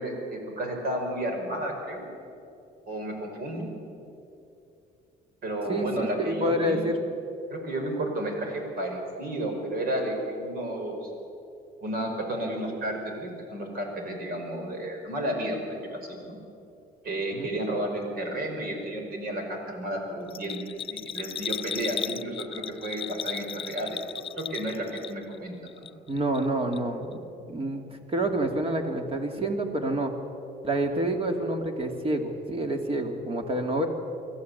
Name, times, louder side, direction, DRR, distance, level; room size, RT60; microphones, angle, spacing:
voice 1, 0.0-2.1 2.9-3.7 5.4-6.9 7.5-11.1 11.8-15.6 15.9-16.4 17.0-20.6 20.9-25.9, right 1 dB, 60° right, 3 dB, 5.1 m, -32 dB
voice 2, 6.2-7.0 17.3-17.5 26.1-27.2 27.5-30.1 30.6-33.9, right 1 dB, 35° right, 4 dB, 2.8 m, -28 dB
Bell, 20.3-25.4 25.7-26.5 26.7-26.8, left 8 dB, 35° left, 0.4 m, -35 dB
24.5 x 14.5 x 8.2 m, 2.7 s
cardioid pair, 110°, 17 cm